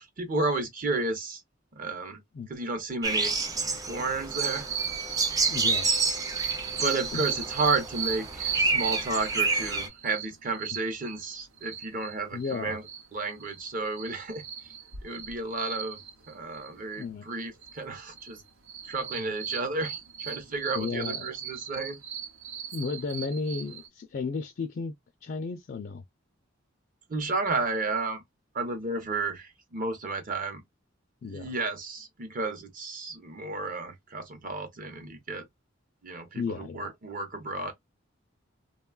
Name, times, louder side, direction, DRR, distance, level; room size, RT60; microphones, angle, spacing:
voice 1, 0.0-1.4 1.7-2.2 2.5-3.4 3.9-4.7 6.7-12.8 13.1-14.4 15.0-16.0 16.3-18.4 18.9-22.0 27.1-28.2 28.5-30.6 31.2-35.5 36.0-37.7, right 3 dB, 45° right, 0.8 m, -32 dB
sound 1, 3.0-9.9, right 3 dB, 20° right, 0.4 m, -29 dB
sound 2, 4.3-12.1 12.4-12.5 12.8-17.0 17.3-18.4 18.7-23.9, right 8 dB, 85° right, 0.7 m, -36 dB
voice 2, 5.5-5.9 7.1-7.2 12.3-12.8 17.0-17.2 19.1-19.3 20.7-21.3 22.7-24.9 25.2-26.0 31.2-31.5 36.4-36.9, left 4 dB, 50° left, 0.4 m, -33 dB
3.1 x 2.2 x 2.2 m
head